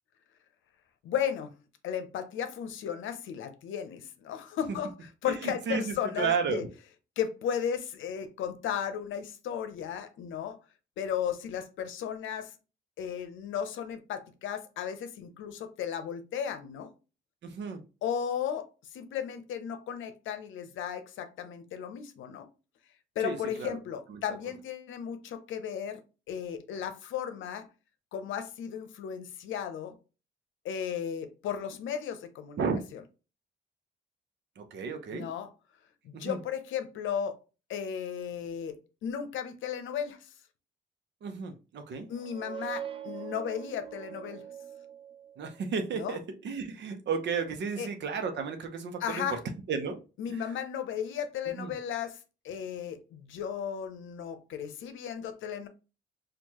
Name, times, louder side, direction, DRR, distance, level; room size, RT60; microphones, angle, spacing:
voice 1, 1.0-1.5 1.8-6.6 7.2-10.6 11.0-12.5 13.0-16.9 18.0-22.5 23.2-26.0 26.3-27.7 28.1-30.0 30.6-32.6 32.9-33.0 35.1-35.5 36.0-37.4 37.7-40.3 42.1-44.4 45.9-46.2 47.8-47.9 49.0-49.4 50.2-52.2 52.4-55.7, left 8 dB, 75° left, 0.7 m, -35 dB
voice 2, 5.3-6.6 17.4-17.8 23.2-23.7 24.1-24.2 32.6-32.8 34.6-35.3 36.1-36.4 41.2-42.1 45.4-49.2 49.7-50.0 50.3-50.4 51.6-51.7, right 5 dB, 65° right, 0.8 m, -33 dB
sound 1, 42.1-45.7, right 9 dB, 30° right, 0.4 m, -42 dB
4.5 x 2.5 x 2.9 m
cardioid pair, 90°, 20 cm